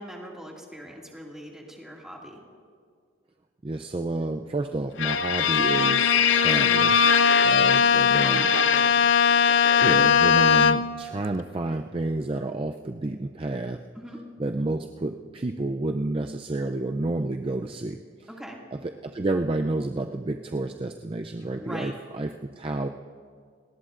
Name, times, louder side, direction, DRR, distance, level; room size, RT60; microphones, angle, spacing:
voice 1, 0.0-2.4 8.2-9.0 13.9-14.2 18.4-18.6 21.4-21.9, equal, 5° right, -2 dB, 2.2 m, -41 dB
voice 2, 3.6-7.0 7.4-8.5 9.8-13.8 14.4-18.3 19.0-22.9, right 2 dB, 25° right, 5 dB, 0.4 m, -30 dB
Bowed string instrument, 5.0-11.1, left 6 dB, 60° left, 0.5 m, -20 dB
29.0 x 19.0 x 2.5 m, 2.1 s
head